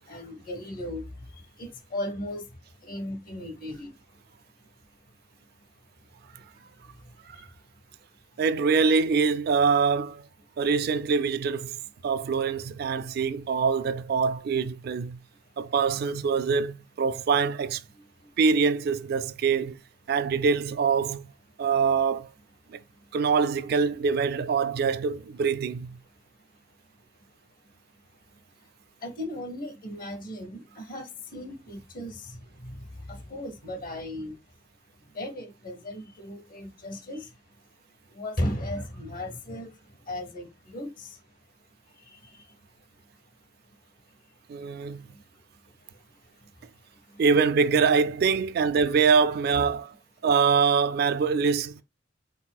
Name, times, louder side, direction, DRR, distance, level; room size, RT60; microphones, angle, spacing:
voice 1, 0.1-1.0 1.6-2.4 2.8-3.9 18.0-18.1 29.0-31.1 31.3-32.2 32.6-32.7 33.1-34.3 35.1-37.2 38.2-39.7 40.1-40.9, left 1 dB, 45° left, 0.9 m, -35 dB
voice 2, 8.4-10.2 10.6-11.8 12.0-15.2 15.6-17.8 18.4-19.8 20.1-21.3 21.6-22.3 22.7-22.8 23.1-26.0 44.5-45.1 47.2-49.9 50.2-51.8, right 5 dB, 55° right, 0.3 m, -24 dB
4.2 x 4.0 x 2.3 m
head